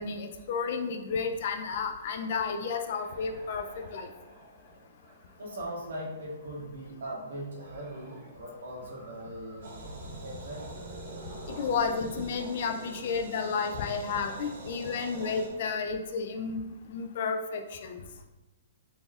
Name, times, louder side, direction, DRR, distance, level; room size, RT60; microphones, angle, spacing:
voice 1, 0.0-4.1 11.5-16.6 16.9-18.0, left 5 dB, 45° left, 6 dB, 0.3 m, -32 dB
sound 1, 2.7-6.5 7.6-8.4 8.7-13.5, right 1 dB, 25° right, 0.6 m, -49 dB
voice 2, 5.4-9.7 10.2-10.8, right 1 dB, 80° right, -3 dB, 1.4 m, -40 dB
sound 2, 9.6-15.5, right 2 dB, 55° right, 0.8 m, -45 dB
4.0 x 2.3 x 3.5 m, 1.0 s
hypercardioid pair, 175°, 0 cm